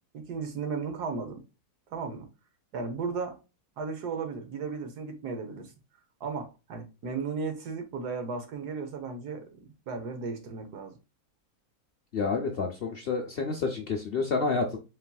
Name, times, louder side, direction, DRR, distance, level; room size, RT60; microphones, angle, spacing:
voice 1, 0.1-1.4 1.9-2.3 2.7-3.4 3.8-5.7 6.2-9.6 9.9-11.0, right 5 dB, 85° right, 1.6 m, -35 dB
voice 2, 12.1-14.8, left 4 dB, 55° left, 0.6 m, -29 dB
4.3 x 4.1 x 2.2 m
omnidirectional pair, 1.7 m